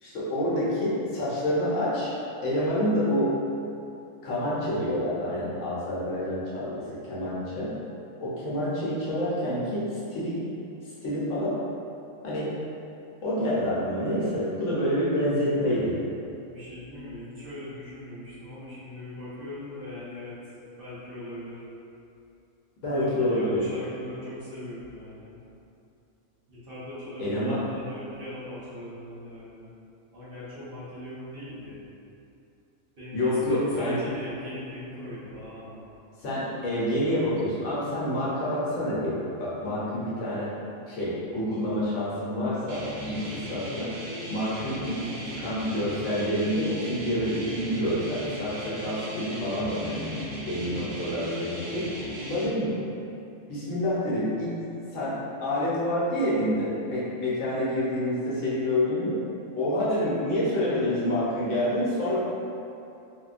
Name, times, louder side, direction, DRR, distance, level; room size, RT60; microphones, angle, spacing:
voice 1, 0.0-2.1 2.4-3.4 4.2-7.7 8.2-10.5 11.0-11.6 12.2-12.6 13.2-16.0 22.8-23.6 27.2-27.6 33.1-34.0 36.2-40.5 40.9-43.9 44.3-50.1 50.5-51.8 52.3-52.7 53.5-54.5 54.9-55.2 55.4-59.2 59.6-62.2, left 1 dB, 65° left, -8 dB, 1.0 m, -27 dB
voice 2, 16.5-20.3 20.8-21.6 22.8-25.4 26.5-29.7 30.1-31.8 33.0-35.8 45.0-45.2, left 1 dB, 50° right, -12 dB, 0.9 m, -40 dB
sound 1, 42.7-52.5, equal, 70° right, 0.9 m, -37 dB
3.5 x 2.1 x 2.4 m, 2.7 s
omnidirectional pair, 1.4 m